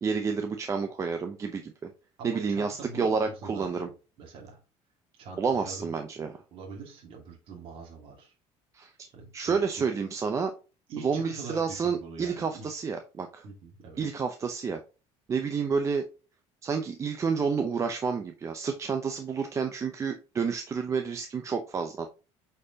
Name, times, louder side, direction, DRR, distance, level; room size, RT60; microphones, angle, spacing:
voice 1, 0.0-1.7 2.2-3.9 5.4-6.4 8.7-9.1 9.3-10.5 11.0-13.4 14.0-14.8 15.3-16.1 16.6-22.1, right 5 dB, 25° right, 0.7 m, -29 dB
voice 2, 2.2-3.9 4.2-4.6 5.2-5.9 6.5-8.4 9.1-9.9 10.9-12.7 13.4-14.0, right 4 dB, 50° right, 2.0 m, -43 dB
8.1 x 4.5 x 2.8 m
cardioid pair, 145°, 12 cm